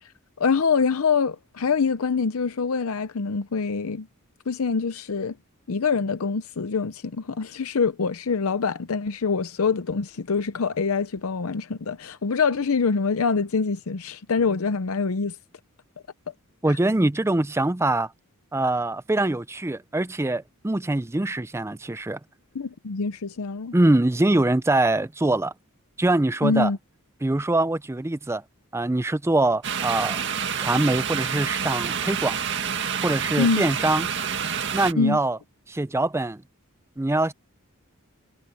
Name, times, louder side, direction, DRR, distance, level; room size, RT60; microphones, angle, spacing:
voice 1, 0.4-4.1 4.5-5.4 5.7-15.4 16.7-16.8 22.5-23.7 26.4-26.8 33.4-33.6 35.0-35.2, left 5 dB, 70° left, 0.6 m, -25 dB
voice 2, 16.6-18.1 18.5-22.2 23.7-25.5 26.0-26.7 27.2-28.4 28.7-30.2 30.6-32.4 33.0-34.1 34.7-35.4 35.7-36.4 37.0-37.3, right 2 dB, 10° right, 0.5 m, -23 dB
sound 1, 29.6-34.9, right 7 dB, 55° right, 2.0 m, -28 dB
head